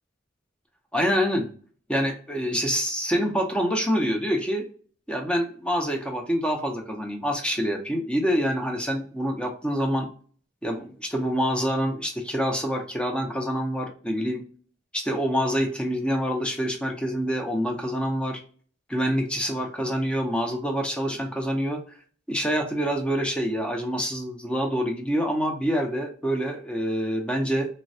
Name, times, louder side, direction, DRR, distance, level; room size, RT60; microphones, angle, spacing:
voice 1, 0.9-1.5 1.9-4.6 5.1-10.1 10.6-14.4 14.9-18.4 18.9-21.8 22.3-27.7, equal, 5° left, 2 dB, 0.6 m, -26 dB
3.1 x 2.2 x 2.6 m, 0.43 s
head